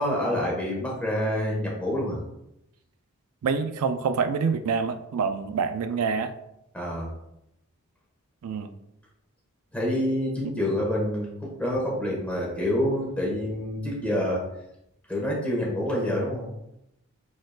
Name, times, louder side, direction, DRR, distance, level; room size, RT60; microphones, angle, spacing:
voice 1, 0.0-2.2 6.7-7.1 9.7-14.4 15.1-16.5, left 1 dB, 5° left, -4 dB, 1.3 m, -27 dB
voice 2, 3.4-6.3 8.4-8.7, right 5 dB, 90° right, 10 dB, 0.4 m, -26 dB
5.1 x 4.2 x 2.4 m, 0.84 s
head